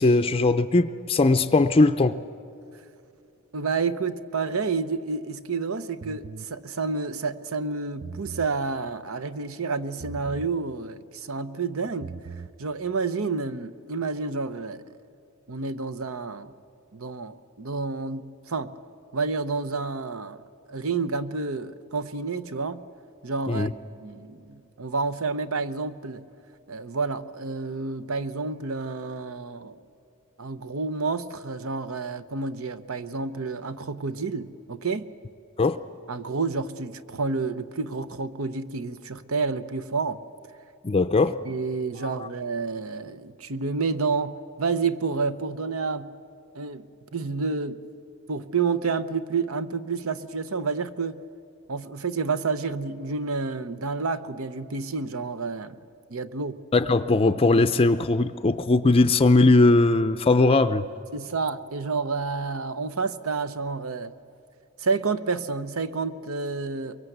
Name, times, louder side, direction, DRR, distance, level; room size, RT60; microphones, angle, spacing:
voice 1, 0.0-2.2 23.5-23.7 35.6-35.8 40.8-41.3 42.0-42.1 56.7-60.8, left 2 dB, 25° left, 11 dB, 0.5 m, -19 dB
voice 2, 3.5-12.2 12.6-14.8 15.5-16.5 16.9-18.7 19.1-20.4 20.7-22.9 23.2-23.7 24.0-26.2 26.7-29.8 30.4-35.0 36.1-40.2 41.4-46.1 46.5-46.9 47.1-47.8 48.3-51.2 51.7-55.8 56.1-56.6 61.1-64.1 64.8-67.0, right 4 dB, 75° right, 12 dB, 0.9 m, -29 dB
sound 1, 6.0-6.5 7.9-8.5 10.0-10.5 11.9-12.5, right 5 dB, 40° right, 0.5 m, -39 dB
23.5 x 23.0 x 8.0 m, 2.7 s
head